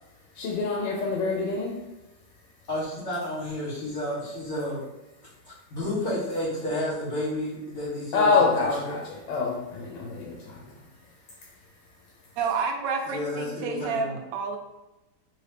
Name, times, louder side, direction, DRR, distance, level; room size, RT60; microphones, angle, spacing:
voice 1, 0.4-1.8 8.1-9.0 9.3-10.6, left 4 dB, 85° left, -1 dB, 1.3 m, -25 dB
voice 2, 2.7-4.8 5.4-9.0 13.1-14.2, left 1 dB, 60° left, -12 dB, 1.8 m, -31 dB
voice 3, 12.4-14.6, right 5 dB, 80° right, 4 dB, 1.2 m, -29 dB
3.3 x 2.7 x 3.3 m, 1.0 s
omnidirectional pair, 1.9 m